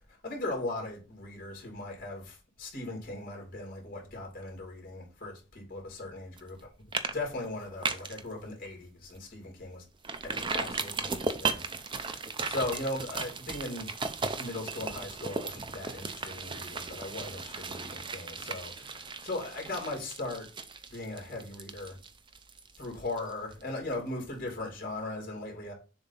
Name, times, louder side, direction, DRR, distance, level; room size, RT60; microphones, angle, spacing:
voice 1, 0.2-6.6 7.1-9.8 10.2-13.9 14.4-20.5 20.9-22.0 22.8-25.7, left 2 dB, 50° left, 2.6 m, -38 dB
sound 1, 6.4-6.6 6.9-7.1 7.4-8.2 8.6-8.7 9.1-9.2 10.0-23.6 23.9-24.0, right 4 dB, 25° right, 0.5 m, -36 dB
7.0 x 2.8 x 5.5 m
head